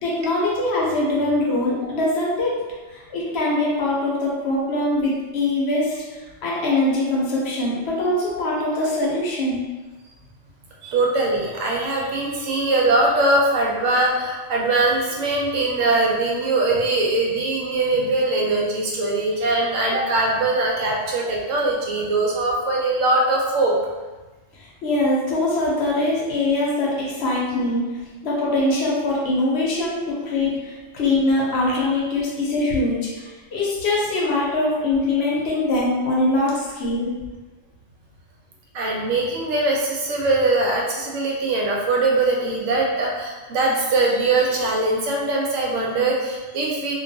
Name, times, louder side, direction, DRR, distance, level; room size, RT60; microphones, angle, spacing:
voice 1, 0.0-9.6 22.0-22.1 24.5-37.1, left 2 dB, 65° left, -4 dB, 0.8 m, -23 dB
voice 2, 10.8-23.8 38.7-46.9, right 2 dB, 85° right, -2 dB, 1.0 m, -21 dB
2.3 x 2.2 x 2.5 m, 1.2 s
omnidirectional pair, 1.3 m